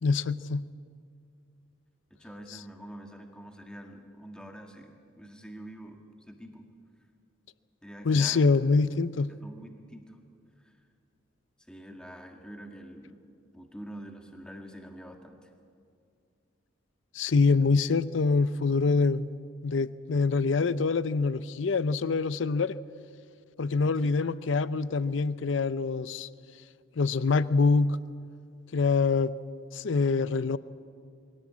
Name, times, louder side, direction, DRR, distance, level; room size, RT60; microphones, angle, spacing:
voice 1, 0.0-0.6 8.0-9.3 17.1-19.3 19.6-22.8 23.6-26.3 27.0-28.0 28.7-29.3 29.7-30.6, left 4 dB, 65° left, 16 dB, 0.5 m, -25 dB
voice 2, 2.1-6.7 7.8-8.5 9.3-10.2 10.6-10.7 11.6-13.2 13.5-15.5 24.0-24.3, right 1 dB, 5° left, 3 dB, 1.8 m, -46 dB
22.5 x 17.0 x 8.5 m, 2.3 s
head